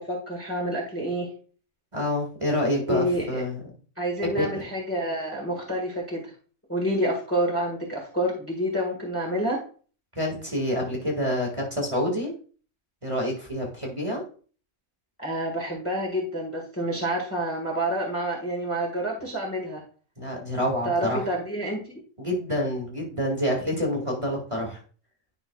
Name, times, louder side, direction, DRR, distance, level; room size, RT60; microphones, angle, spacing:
voice 1, 0.1-1.3 2.9-3.4 4.0-6.3 6.7-9.6 15.2-19.8 20.8-21.9, right 1 dB, 10° left, -1 dB, 1.5 m, -28 dB
voice 2, 1.9-3.6 4.2-4.6 10.2-12.3 13.0-14.2 20.2-21.3 22.2-24.8, equal, 20° right, -1 dB, 1.8 m, -27 dB
10.5 x 5.6 x 2.3 m, 0.40 s
omnidirectional pair, 1.5 m